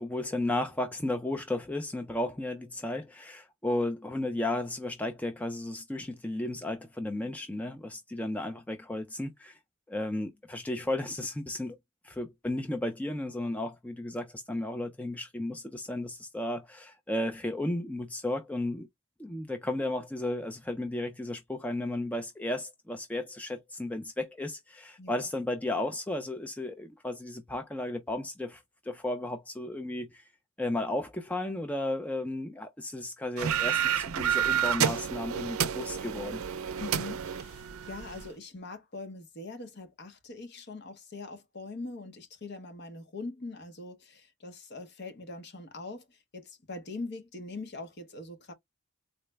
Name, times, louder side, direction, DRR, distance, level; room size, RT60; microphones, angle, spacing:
voice 1, 0.0-9.6 9.9-11.8 12.0-18.9 19.2-30.2 30.6-36.4, left 1 dB, 5° left, 0.3 m, -34 dB
sound 1, 33.4-38.3, right 9 dB, 80° right, 0.4 m, -30 dB
voice 2, 36.8-48.5, left 3 dB, 50° left, 0.8 m, -42 dB
3.9 x 2.0 x 3.2 m
head